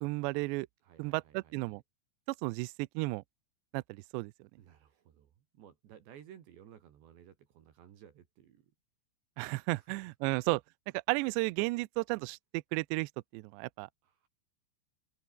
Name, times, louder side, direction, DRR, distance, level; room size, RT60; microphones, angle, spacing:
voice 1, 0.0-0.7 1.0-1.8 2.4-3.2 3.7-4.5 9.4-10.6 10.9-13.9, right 24 dB, 90° right, 2.5 m, -33 dB
voice 2, 0.8-1.8 4.6-8.7 9.8-10.0 14.0-14.3, right 10 dB, 65° right, 4.3 m, -57 dB
open air
omnidirectional pair, 5.6 m